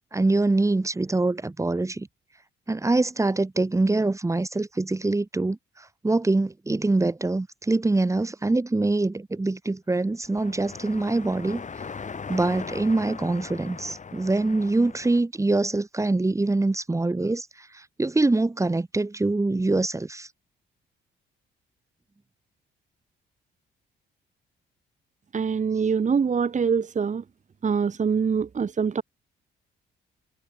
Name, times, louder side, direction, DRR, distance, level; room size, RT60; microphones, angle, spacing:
voice 1, 0.1-2.1 2.7-5.6 6.0-11.6 12.3-17.5 18.0-20.3, right 2 dB, 15° right, 1.8 m, -24 dB
sound 1, 10.2-15.2, left 5 dB, 40° left, 5.0 m, -39 dB
voice 2, 25.3-27.2 27.6-29.0, right 6 dB, 40° right, 1.9 m, -24 dB
cardioid pair, 90°, 20 cm